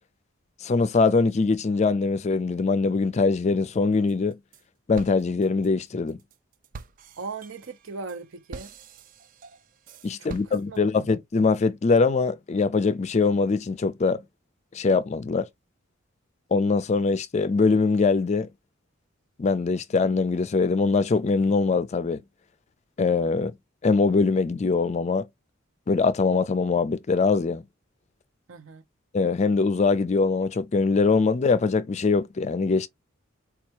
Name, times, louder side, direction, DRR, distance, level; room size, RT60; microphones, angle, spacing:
voice 1, 0.6-4.4 4.9-6.2 10.0-14.2 14.7-15.5 16.5-18.5 19.4-22.2 23.0-23.5 23.8-25.3 25.9-27.6 29.1-32.9, left 4 dB, 35° left, 0.4 m, -22 dB
sound 1, 4.1-4.6 5.0-11.0, right 4 dB, 40° right, 0.3 m, -45 dB
voice 2, 7.2-8.7 10.2-11.1 28.5-28.8, right 4 dB, 70° right, 0.7 m, -38 dB
4.4 x 2.3 x 2.8 m
head